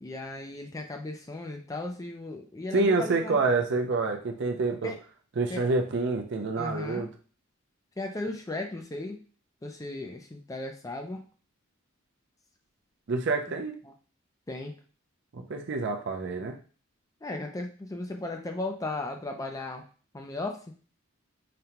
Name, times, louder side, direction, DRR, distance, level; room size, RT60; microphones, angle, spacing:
voice 1, 0.0-3.4 4.8-5.0 5.5-5.6 6.6-7.0 8.0-9.2 9.6-11.3 14.5-14.8 17.2-19.8 20.1-20.6, left 2 dB, 15° left, 3 dB, 0.4 m, -36 dB
voice 2, 2.7-4.9 5.4-7.1 13.1-13.8 15.3-16.6, right 3 dB, 55° right, 4 dB, 0.5 m, -27 dB
5.0 x 2.2 x 2.9 m, 0.39 s
head